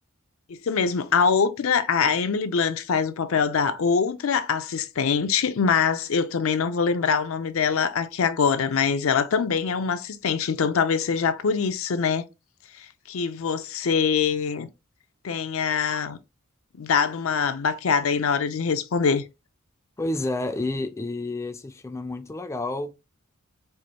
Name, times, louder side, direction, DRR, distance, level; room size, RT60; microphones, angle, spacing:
voice 1, 0.5-12.3 13.1-14.7 15.2-16.2 16.8-19.2, left 6 dB, 75° left, 0.5 m, -23 dB
voice 2, 20.0-22.9, left 2 dB, 15° left, 0.4 m, -30 dB
4.6 x 2.6 x 2.8 m
head